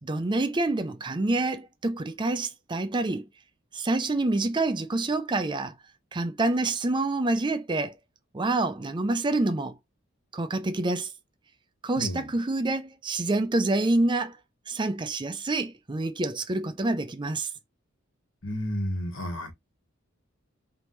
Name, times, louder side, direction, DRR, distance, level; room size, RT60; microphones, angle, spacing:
voice 1, 0.0-3.3 3.7-5.8 6.1-8.0 8.3-9.8 10.3-11.1 11.8-14.4 14.7-17.5, right 2 dB, 20° right, 0.5 m, -27 dB
voice 2, 18.4-19.5, left 1 dB, 65° left, 1.5 m, -31 dB
3.8 x 3.4 x 3.1 m
head